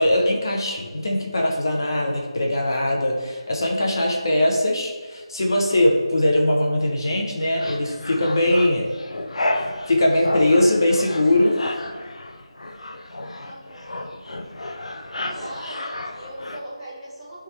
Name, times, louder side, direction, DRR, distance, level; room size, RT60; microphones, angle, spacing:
voice 1, 0.0-8.9 9.9-11.6, left 1 dB, 45° left, 1 dB, 1.0 m, -21 dB
voice 2, 4.0-4.3 13.4-14.2 15.1-17.4, right 1 dB, 5° right, -13 dB, 0.9 m, -39 dB
sound 1, 7.4-16.6, left 1 dB, 90° left, 0.7 m, -32 dB
10.5 x 3.6 x 3.3 m, 1.4 s
figure-of-eight pair, 175°, 3 cm